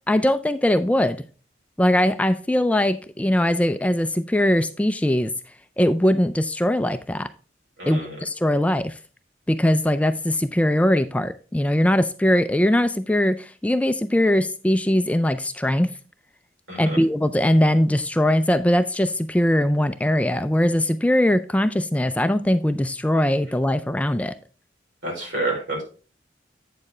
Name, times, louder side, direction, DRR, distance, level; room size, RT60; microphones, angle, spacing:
voice 1, 0.1-1.2 1.8-5.3 5.8-7.3 7.9-9.0 9.5-15.9 16.8-24.3, left 1 dB, 5° left, 0.3 m, -21 dB
voice 2, 7.8-8.2 16.7-17.0 25.0-25.8, right 2 dB, 85° right, 4.7 m, -28 dB
8.4 x 6.9 x 3.2 m
head